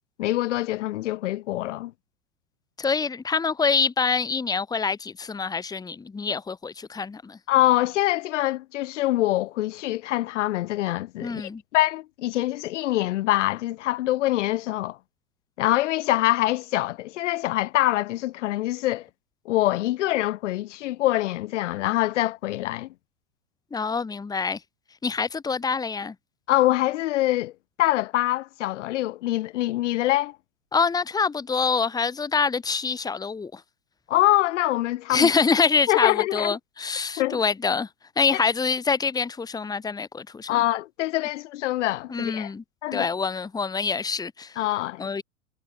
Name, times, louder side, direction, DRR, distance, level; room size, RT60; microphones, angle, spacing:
voice 1, 0.2-1.9 7.5-15.0 15.6-19.1 19.4-22.9 26.5-27.5 27.8-30.4 34.1-35.3 35.9-36.6 37.2-37.4 38.3-38.4 40.5-42.5 42.8-43.1 44.6-45.2, left 16 dB, 55° left, 1.5 m, -24 dB
voice 2, 2.8-7.4 11.2-11.6 23.7-24.6 25.0-26.1 30.7-33.6 35.1-37.9 38.2-40.5 42.1-42.6 42.9-44.5 45.0-45.2, left 5 dB, 10° left, 1.4 m, -25 dB
hypercardioid pair, 105°, 43 cm